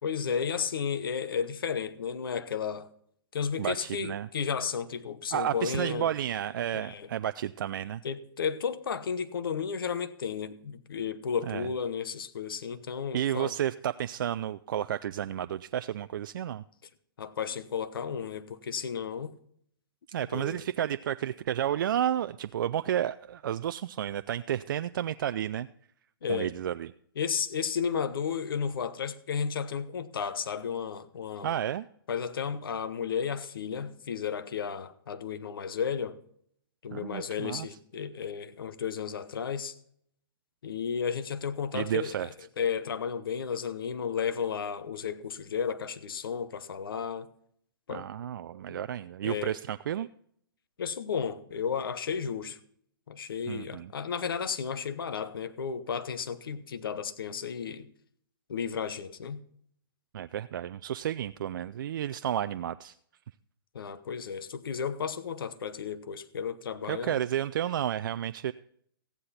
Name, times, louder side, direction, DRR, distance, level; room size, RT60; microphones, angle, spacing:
voice 1, 0.0-2.9 3.3-6.1 6.7-7.1 8.0-13.5 17.2-19.3 20.3-20.6 26.2-26.5 27.2-31.5 32.1-36.2 36.8-39.7 40.6-42.1 42.6-47.3 47.9-48.1 49.2-49.6 50.8-52.6 53.1-57.9 58.5-59.4 63.7-67.2, left 7 dB, 70° left, 1.0 m, -33 dB
voice 2, 3.6-4.3 5.3-8.0 11.5-11.7 13.1-16.6 20.1-25.7 26.3-26.9 31.4-31.9 36.9-37.7 41.7-42.3 47.9-50.1 53.5-53.9 60.1-62.9 66.9-68.5, right 10 dB, 60° right, 0.4 m, -31 dB
15.0 x 9.9 x 4.2 m
hypercardioid pair, 140°, 12 cm